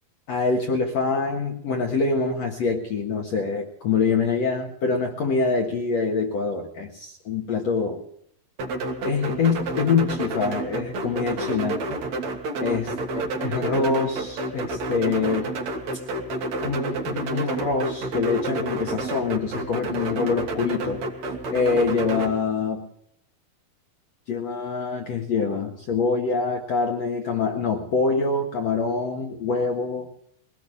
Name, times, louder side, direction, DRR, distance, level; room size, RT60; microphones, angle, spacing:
voice 1, 0.3-8.1 9.1-11.8 12.6-12.9 13.4-15.5 16.6-21.0 21.5-22.8 24.3-30.1, left 4 dB, 55° left, 2 dB, 2.5 m, -25 dB
sound 1, 8.6-22.3, right 2 dB, 55° right, 2.9 m, -30 dB
22.5 x 18.5 x 3.5 m, 0.69 s
omnidirectional pair, 4.1 m